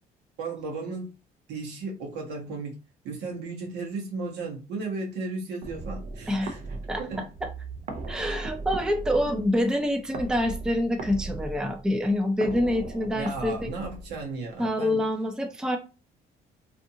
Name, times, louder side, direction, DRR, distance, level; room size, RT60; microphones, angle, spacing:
voice 1, 0.4-1.1 1.5-2.8 3.0-6.6 7.0-7.3 13.2-15.0, right 3 dB, 80° right, -1 dB, 1.1 m, -35 dB
sound 1, 5.6-14.6, right 3 dB, 50° right, 0.6 m, -38 dB
voice 2, 8.1-13.7 14.6-15.8, left 1 dB, 5° right, 5 dB, 0.4 m, -26 dB
2.6 x 2.5 x 2.7 m, 0.32 s
cardioid pair, 110°, 17 cm